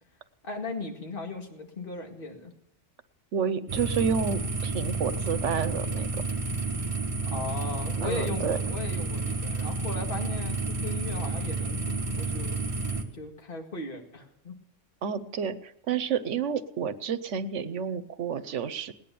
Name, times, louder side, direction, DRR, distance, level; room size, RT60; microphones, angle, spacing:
voice 1, 0.4-2.5 7.3-12.6 13.0-14.6, left 3 dB, 45° left, 2 dB, 2.2 m, -37 dB
voice 2, 3.3-6.1 8.0-8.6 15.0-18.9, right 7 dB, 70° right, 12 dB, 1.1 m, -30 dB
sound 1, 3.7-13.0, right 3 dB, 25° right, 1.8 m, -30 dB
19.0 x 10.5 x 6.9 m, 0.83 s
omnidirectional pair, 1.3 m